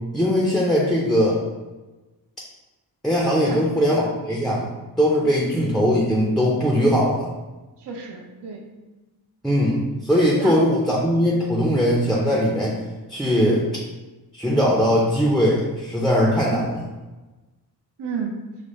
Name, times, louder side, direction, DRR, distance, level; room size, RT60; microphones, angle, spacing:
voice 1, 0.1-1.4 3.0-4.7 5.0-7.3 9.4-12.8 13.1-13.6 14.3-16.8, equal, ahead, -4 dB, 0.5 m, -20 dB
voice 2, 3.4-3.9 5.2-5.3 7.8-8.6 10.3-10.6 13.5-13.6 18.0-18.3, right 5 dB, 75° right, -1 dB, 0.7 m, -32 dB
5.0 x 2.0 x 3.1 m, 1.2 s
wide cardioid pair, 90°, 41 cm